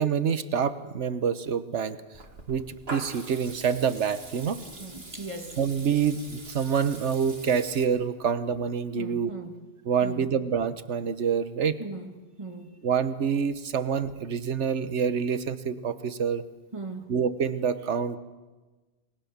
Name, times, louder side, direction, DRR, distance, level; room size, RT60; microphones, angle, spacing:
voice 1, 0.0-2.0 2.5-4.6 5.6-9.3 9.9-11.7 12.8-16.4 17.1-18.2, right 7 dB, 80° right, 13 dB, 1.4 m, -27 dB
Water tap faucet / Liquid, 2.1-7.8, right 2 dB, 60° right, 2.6 m, -43 dB
voice 2, 4.8-5.6 9.0-9.6 10.0-10.3 11.8-12.1 12.4-12.8 16.7-17.1, right 3 dB, 25° right, 6 dB, 1.9 m, -38 dB
29.0 x 21.0 x 7.3 m, 1.3 s
omnidirectional pair, 1.2 m